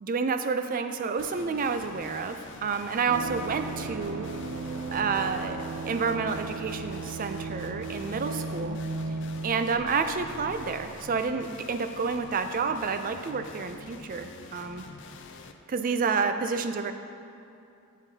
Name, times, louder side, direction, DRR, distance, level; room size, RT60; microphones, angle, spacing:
voice 1, 0.0-4.3 4.9-8.8 9.4-14.8 15.7-16.9, right 5 dB, 40° right, 8 dB, 0.4 m, -29 dB
sound 1, 1.2-15.5, left 4 dB, 55° left, 0.4 m, -46 dB
sound 2, 3.1-11.6 11.8-11.9, right 3 dB, 85° right, 0.6 m, -36 dB
12.5 x 7.2 x 2.8 m, 2.6 s
head